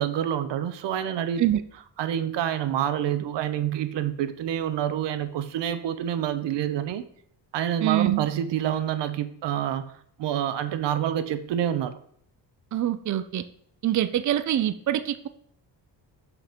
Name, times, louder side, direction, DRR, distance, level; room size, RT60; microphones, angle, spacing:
voice 1, 0.0-1.4 2.0-7.0 7.5-9.9 10.2-12.0, right 10 dB, 80° right, 12 dB, 0.8 m, -27 dB
voice 2, 7.8-8.3 12.7-13.4 13.8-15.3, right 12 dB, 45° right, 12 dB, 0.6 m, -24 dB
6.0 x 5.8 x 5.1 m, 0.63 s
cardioid pair, 100°, 42 cm